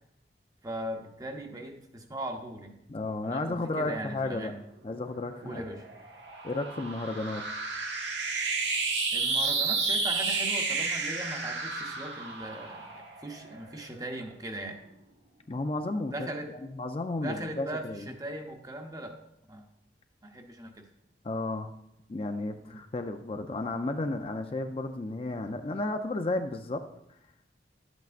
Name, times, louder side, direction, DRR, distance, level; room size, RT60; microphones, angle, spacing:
voice 1, 0.6-2.8 3.2-4.5 5.4-5.9 9.1-14.8 16.1-16.5 17.2-19.2 19.5-19.6 20.2-20.9 22.7-22.8, right 1 dB, 20° right, 3 dB, 0.8 m, -39 dB
voice 2, 2.9-4.5 4.8-5.6 6.4-7.4 15.5-18.1 21.2-21.7 22.1-26.8, left 2 dB, 30° left, 6 dB, 0.4 m, -33 dB
sound 1, 5.3-14.0, right 4 dB, 90° right, 1.3 m, -31 dB
12.0 x 8.1 x 2.5 m, 0.81 s
head